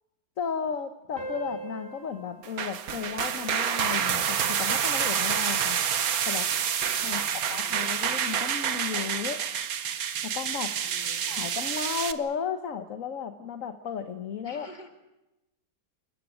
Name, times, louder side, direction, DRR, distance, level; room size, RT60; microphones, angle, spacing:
voice 1, 0.4-5.8 6.2-6.5 7.0-9.4 10.2-10.7 11.3-14.7, left 7 dB, 55° left, 8 dB, 1.4 m, -34 dB
sound 1, 1.2-6.1, right 2 dB, 25° right, 5.3 m, -44 dB
sound 2, 2.4-12.1, right 8 dB, 65° right, 1.4 m, -28 dB
voice 2, 7.0-8.0 10.8-11.4 14.4-14.9, left 2 dB, 25° left, 3 dB, 2.9 m, -49 dB
29.0 x 14.5 x 9.3 m, 0.98 s
omnidirectional pair, 1.8 m